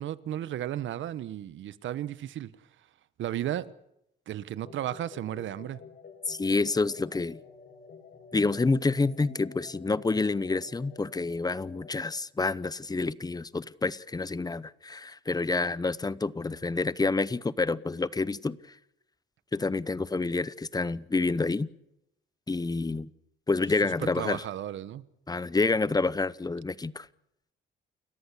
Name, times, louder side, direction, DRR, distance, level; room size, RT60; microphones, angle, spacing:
voice 1, 0.0-2.5 3.2-3.7 4.3-5.8 24.0-25.0, right 12 dB, 75° right, 1.1 m, -34 dB
sound 1, 4.6-12.0, left 5 dB, 50° left, 3.8 m, -50 dB
voice 2, 6.3-7.4 8.3-18.6 19.5-21.7 22.5-23.1 23.5-24.4 25.3-27.1, left 3 dB, 20° left, 0.9 m, -28 dB
29.5 x 14.0 x 8.4 m
cardioid pair, 90°, 20 cm